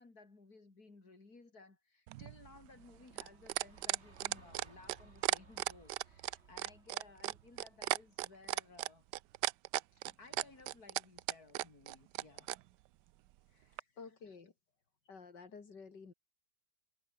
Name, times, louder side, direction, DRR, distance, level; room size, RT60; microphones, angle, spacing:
voice 1, 0.0-9.0 9.9-12.5 13.5-14.0, left 3 dB, 60° left, 4.8 m, -59 dB
sound 1, 2.1-12.6 13.8-13.9, right 16 dB, 80° right, 1.2 m, -36 dB
sound 2, 2.8-9.0, right 2 dB, 40° right, 4.3 m, -64 dB
voice 2, 14.0-14.5 15.1-16.1, left 5 dB, 80° left, 3.4 m, -52 dB
omnidirectional pair, 1.8 m